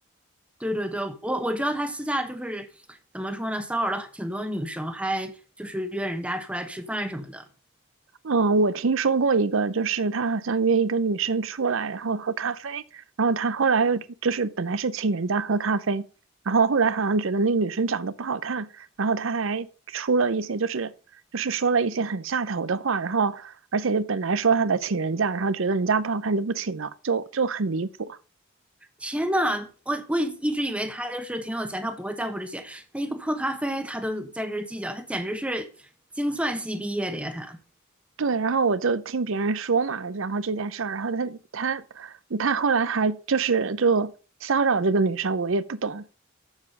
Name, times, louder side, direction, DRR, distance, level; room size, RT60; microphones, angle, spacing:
voice 1, 0.6-2.7 3.1-5.3 5.6-7.5 29.0-35.7 36.2-37.6, equal, 5° right, 1.1 m, -29 dB
voice 2, 8.2-16.0 16.5-20.9 21.3-28.2 38.2-44.1 44.4-46.0, right 4 dB, 70° right, 0.7 m, -25 dB
7.3 x 7.2 x 6.5 m
head